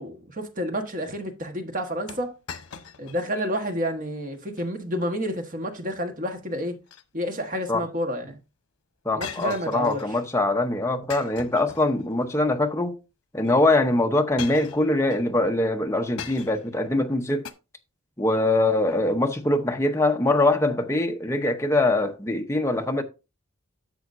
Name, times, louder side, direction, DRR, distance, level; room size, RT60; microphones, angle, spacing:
voice 1, 0.0-2.3 3.0-6.8 7.1-8.4 9.1-10.0, equal, 40° right, 1.4 m, -29 dB
sound 1, 2.1-3.3 3.6-3.7 4.3-4.7 6.6-7.5 9.2-10.2 11.1-12.3 13.4-13.5 14.4-15.2 16.2-16.8 17.4-17.5, left 7 dB, 90° left, 0.9 m, -40 dB
voice 2, 9.0-13.0 13.3-17.5 18.2-23.0, left 2 dB, 15° left, 0.7 m, -23 dB
10.5 x 6.9 x 2.6 m
head